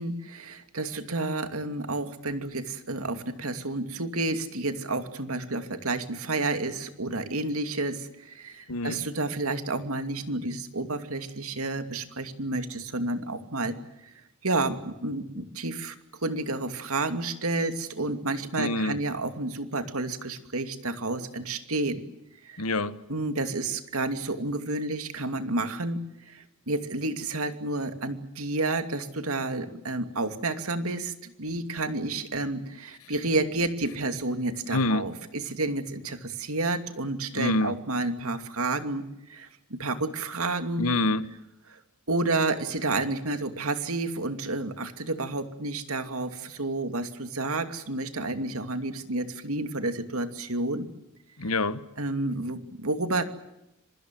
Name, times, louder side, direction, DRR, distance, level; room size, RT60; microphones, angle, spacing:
voice 1, 0.0-13.7 14.0-14.1 14.4-15.9 16.2-22.0 22.4-22.6 23.1-39.0 39.3-40.9 41.7-41.8 42.1-50.9 52.0-53.2, right 2 dB, 70° right, 8 dB, 2.7 m, -30 dB
voice 2, 8.7-9.0 18.6-19.0 22.6-23.0 33.0-33.1 34.7-35.1 37.3-37.8 40.8-41.3 51.4-51.8, left 2 dB, 75° left, 13 dB, 1.4 m, -26 dB
26.5 x 24.5 x 7.8 m, 0.88 s
head